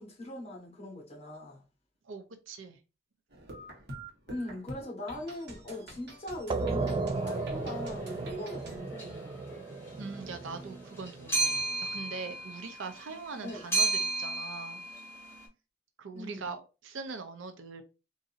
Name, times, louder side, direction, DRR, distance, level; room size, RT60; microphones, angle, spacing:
voice 1, 0.0-1.6 4.3-9.6 13.4-13.6 16.1-16.5, left 1 dB, 35° left, 1.4 m, -41 dB
voice 2, 2.1-2.8 10.0-13.9 14.2-14.8 16.0-17.8, right 4 dB, 85° right, 0.6 m, -42 dB
sound 1, 3.3-8.8, right 1 dB, 60° right, 1.1 m, -47 dB
sound 2, 6.5-11.8, right 3 dB, 25° right, 0.3 m, -35 dB
sound 3, 7.7-7.9 9.0-9.4 9.7-15.5, right 3 dB, 15° left, 1.7 m, -34 dB
3.9 x 2.6 x 2.5 m
head